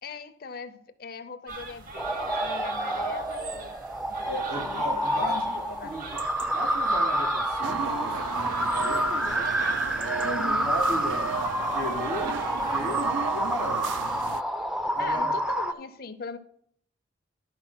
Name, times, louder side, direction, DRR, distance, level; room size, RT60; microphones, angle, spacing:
voice 1, 0.0-3.7 4.1-5.9 10.2-10.7 15.0-16.4, left 4 dB, 55° left, 0.6 m, -40 dB
sound 1, 1.5-13.0, right 4 dB, 50° right, 1.0 m, -39 dB
sound 2, 2.0-15.7, right 1 dB, 5° right, 0.4 m, -28 dB
voice 2, 4.2-9.5 10.0-11.4 11.7-13.9 14.9-15.3, equal, 70° right, 2.8 m, -36 dB
sound 3, 7.6-14.4, right 8 dB, 85° right, 0.3 m, -36 dB
11.0 x 4.3 x 5.8 m
head